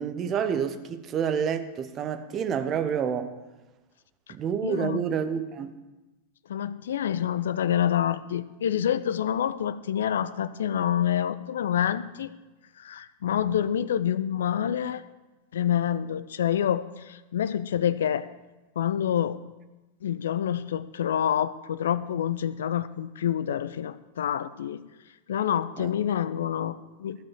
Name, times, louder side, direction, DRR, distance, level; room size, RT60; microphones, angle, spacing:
voice 1, 0.0-3.3 4.3-5.8 25.8-25.9, right 7 dB, 30° right, 0.9 m, -28 dB
voice 2, 4.6-5.0 6.5-12.3 12.8-15.0 15.5-18.3 18.8-19.4 20.0-24.8 25.3-27.2, left 9 dB, 60° left, 0.5 m, -27 dB
15.0 x 5.4 x 7.2 m
figure-of-eight pair, 90°, 0 cm